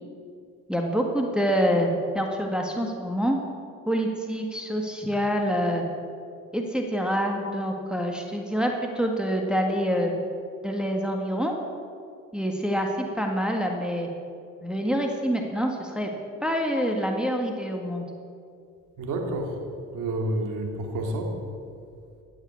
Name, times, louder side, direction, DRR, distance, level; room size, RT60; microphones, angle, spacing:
voice 1, 0.7-3.4 3.9-5.8 6.5-10.1 10.6-11.5 12.3-14.1 14.6-16.1 16.4-18.0, equal, 5° right, 1 dB, 1.8 m, -26 dB
voice 2, 19.0-19.6 19.9-21.4, right 1 dB, 90° right, 2 dB, 2.6 m, -29 dB
14.5 x 9.0 x 8.5 m, 2.4 s
cardioid pair, 90°, 30 cm